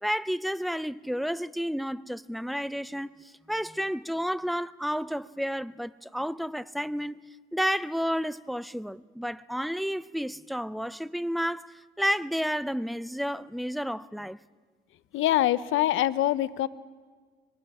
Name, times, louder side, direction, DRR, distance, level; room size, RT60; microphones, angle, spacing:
voice 1, 0.0-3.1 3.5-7.2 7.5-14.4, equal, ahead, 0.5 m, -31 dB
voice 2, 15.1-16.7, left 13 dB, 80° left, 0.7 m, -24 dB
24.5 x 22.0 x 4.9 m
cardioid pair, 90°, 20 cm